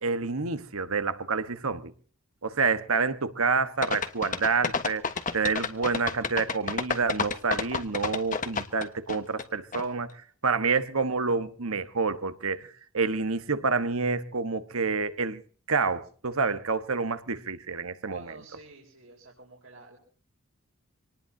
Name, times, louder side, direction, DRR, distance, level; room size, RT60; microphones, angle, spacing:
voice 1, 0.0-1.9 2.4-5.0 5.3-10.1 10.4-15.4 15.7-18.4, right 4 dB, 80° right, 1.3 m, -28 dB
sound 1, 3.8-9.4 9.7-9.8, left 4 dB, 35° left, 1.2 m, -29 dB
voice 2, 18.1-20.0, right 2 dB, 60° right, 4.3 m, -50 dB
25.5 x 19.0 x 2.8 m
head